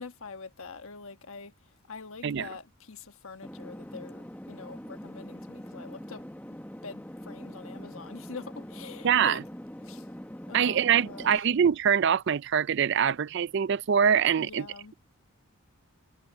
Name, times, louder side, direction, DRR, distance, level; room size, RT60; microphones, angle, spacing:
voice 1, 0.0-6.6 6.8-9.4 9.8-10.1 10.5-11.5 14.4-14.9, left 4 dB, 70° left, 1.3 m, -45 dB
sound 1, 3.4-11.4, equal, 5° left, 1.2 m, -43 dB
voice 2, 9.0-9.4 10.5-14.7, right 8 dB, 50° right, 0.4 m, -24 dB
head